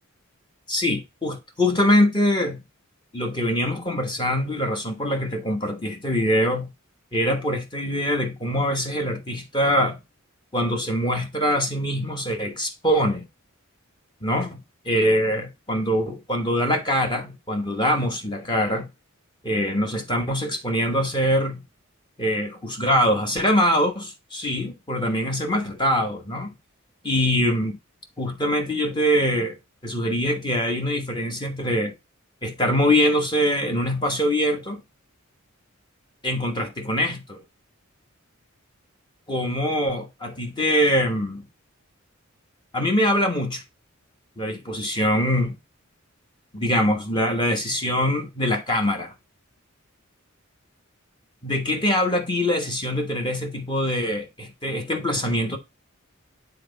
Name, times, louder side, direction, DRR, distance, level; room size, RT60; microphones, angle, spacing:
voice 1, 0.7-2.6 3.1-6.7 7.1-10.0 10.5-13.3 14.2-14.6 14.8-18.9 19.4-21.6 22.2-26.5 27.0-27.8 28.2-29.6 29.8-31.9 32.4-34.8 36.2-37.4 39.3-41.4 42.7-43.6 44.4-45.6 46.5-49.1 51.4-55.6, equal, 20° left, 1.2 m, -23 dB
7.8 x 3.9 x 3.9 m
head